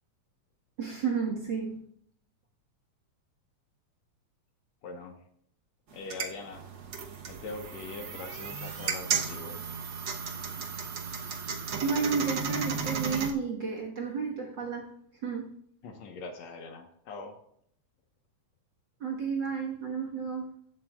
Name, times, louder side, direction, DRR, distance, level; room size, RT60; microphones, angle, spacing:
voice 1, 0.8-1.8 11.8-14.9 15.2-15.5 19.0-20.5, right 5 dB, 45° right, 0 dB, 1.7 m, -31 dB
voice 2, 4.8-5.2 5.9-6.6 7.3-9.6 15.8-17.4, left 3 dB, 65° left, 4 dB, 2.3 m, -42 dB
sound 1, 5.9-13.3, right 5 dB, 60° right, 1.2 m, -34 dB
15.5 x 11.5 x 2.4 m, 0.67 s
omnidirectional pair, 3.5 m